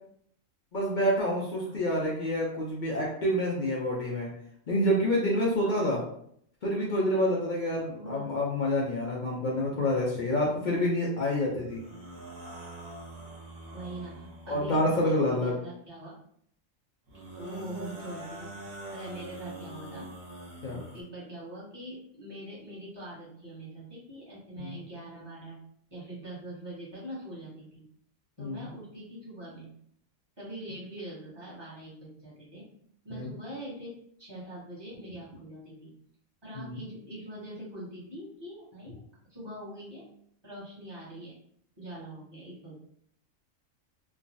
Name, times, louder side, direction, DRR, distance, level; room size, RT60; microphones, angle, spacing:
voice 1, 0.7-4.3 4.7-6.0 6.6-11.8 14.5-15.5 20.6-20.8 24.6-24.8 28.4-28.7 33.1-33.3 36.6-36.8, left 1 dB, 50° left, -4 dB, 0.6 m, -28 dB
voice 2, 1.5-1.9 5.6-6.0 7.9-8.3 13.7-16.2 17.3-20.1 20.7-25.6 25.9-27.9 28.4-29.7 30.4-32.7 33.0-36.0 36.4-39.0 39.3-40.1 40.4-41.4 41.8-42.7, right 1 dB, 20° right, -8 dB, 1.2 m, -43 dB
sound 1, 11.7-15.1 17.1-21.0, right 1 dB, 80° right, 1.2 m, -44 dB
3.1 x 2.2 x 2.6 m, 0.67 s
omnidirectional pair, 1.4 m